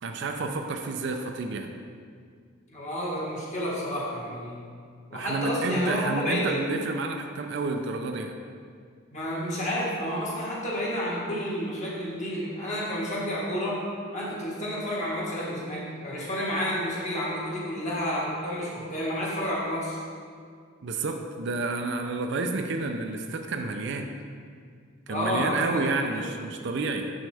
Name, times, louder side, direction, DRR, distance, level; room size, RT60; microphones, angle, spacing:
voice 1, 0.0-1.7 5.1-8.4 20.8-24.1 25.1-27.1, right 3 dB, 55° right, 4 dB, 0.4 m, -30 dB
voice 2, 2.7-4.7 5.1-6.6 9.1-13.8 14.1-20.0 25.1-25.8 26.1-26.2, equal, 35° left, -5 dB, 1.4 m, -30 dB
6.5 x 6.2 x 3.3 m, 2.1 s
head